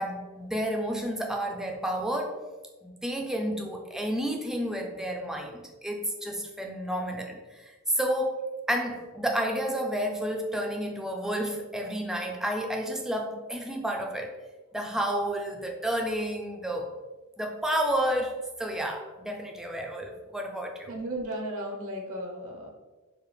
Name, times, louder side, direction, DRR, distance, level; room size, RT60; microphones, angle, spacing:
voice 1, 0.0-2.4 2.8-14.3 14.7-17.0 17.4-21.0, equal, ahead, 2 dB, 0.4 m, -31 dB
voice 2, 20.9-22.7, right 1 dB, 70° right, 1 dB, 0.8 m, -35 dB
4.9 x 2.3 x 3.1 m, 1.2 s
head